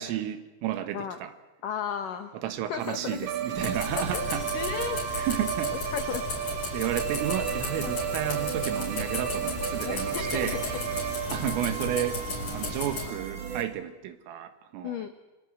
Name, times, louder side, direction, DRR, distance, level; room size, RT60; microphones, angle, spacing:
voice 1, 0.0-1.3 2.4-4.4 5.1-5.8 6.7-10.6 11.3-12.2 12.5-15.1, right 11 dB, 80° right, 10 dB, 4.1 m, -32 dB
voice 2, 1.6-2.3 2.7-3.2 4.0-5.0 5.9-6.2 7.8-8.0 9.8-10.7 14.8-15.1, left 7 dB, 85° left, 8 dB, 1.8 m, -34 dB
sound 1, 2.8-13.6, right 6 dB, 45° right, 3.7 m, -39 dB
Bowed string instrument, 3.2-11.5, right 9 dB, 65° right, 2.4 m, -34 dB
sound 2, 3.5-13.1, left 3 dB, 35° left, 5.7 m, -35 dB
29.0 x 24.5 x 7.7 m, 1.1 s
omnidirectional pair, 5.8 m